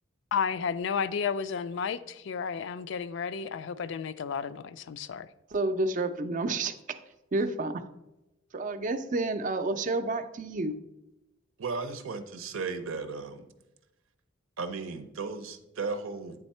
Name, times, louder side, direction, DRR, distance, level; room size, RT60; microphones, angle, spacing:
voice 1, 0.3-5.3, left 6 dB, 60° left, 0.3 m, -32 dB
voice 2, 5.5-6.7 7.3-7.8 8.5-10.8, right 2 dB, 40° right, 0.4 m, -29 dB
voice 3, 11.6-13.5 14.6-16.4, right 4 dB, 85° right, 0.6 m, -35 dB
9.0 x 3.5 x 4.2 m
head